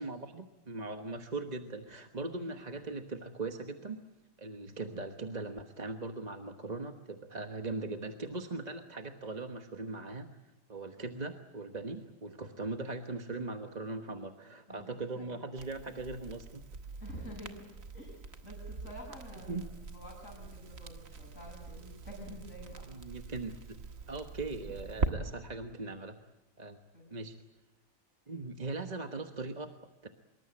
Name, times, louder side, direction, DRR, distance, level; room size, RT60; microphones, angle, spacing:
voice 1, 0.0-4.0 4.4-16.6 19.5-19.7 22.9-23.8 24.1-26.2 26.6-26.8 27.1-27.3 28.3-30.1, right 3 dB, 30° right, 6 dB, 1.3 m, -40 dB
voice 2, 14.7-15.4 17.0-19.6 19.9-22.9 26.9-27.1, equal, 65° left, -3 dB, 7.0 m, -48 dB
Crackle, 15.5-25.1, right 4 dB, 75° right, 2.0 m, -42 dB
26.0 x 23.0 x 8.7 m, 0.95 s
omnidirectional pair, 1.4 m